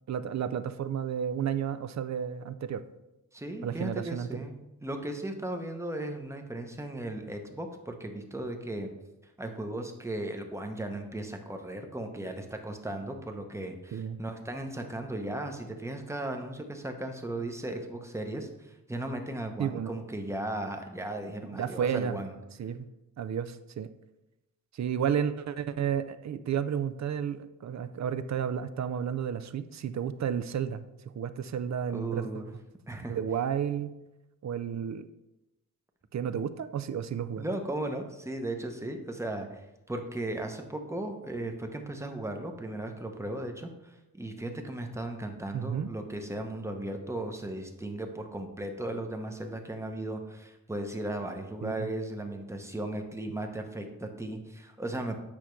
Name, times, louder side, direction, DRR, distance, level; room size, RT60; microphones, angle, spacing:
voice 1, 0.1-2.8 3.6-4.5 13.9-14.2 19.6-20.0 21.5-22.2 22.6-22.9 23.2-23.9 24.7-30.8 31.2-32.4 33.1-34.0 34.4-35.1 36.1-37.4 45.5-45.9 51.6-51.9, right 8 dB, 55° right, 12 dB, 0.5 m, -32 dB
voice 2, 3.3-8.9 9.4-22.3 31.9-32.5 32.9-33.2 37.4-39.6 39.9-55.2, right 1 dB, 10° right, 4 dB, 0.7 m, -36 dB
8.7 x 5.7 x 3.1 m, 0.96 s
wide cardioid pair, 140°, 33 cm